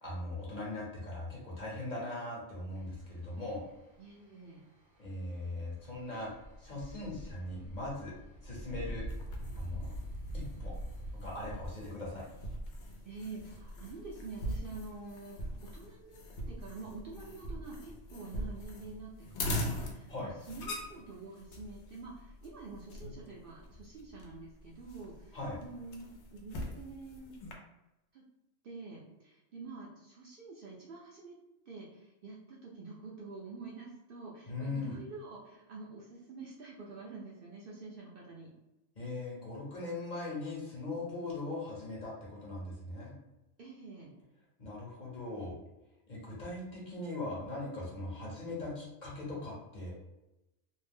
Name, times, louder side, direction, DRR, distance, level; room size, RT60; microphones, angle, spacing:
voice 1, 0.0-3.6 5.0-6.3 6.6-8.1 8.4-9.1 9.5-9.9 10.3-10.7 11.2-12.3 20.1-20.3 25.3-25.6 34.5-35.0 38.9-43.1 44.6-45.5 46.1-49.9, left 2 dB, 40° left, -5 dB, 0.9 m, -40 dB
sound 1, 2.7-11.7, equal, 80° right, 1.0 m, -44 dB
voice 2, 4.0-4.6 13.0-16.2 16.5-27.3 28.1-28.2 28.6-31.4 31.7-38.5 43.6-44.1, right 3 dB, 60° right, -3 dB, 0.6 m, -47 dB
sound 2, 9.1-27.5, left 1 dB, 70° left, 0.8 m, -42 dB
2.5 x 2.0 x 3.4 m, 0.95 s
omnidirectional pair, 1.2 m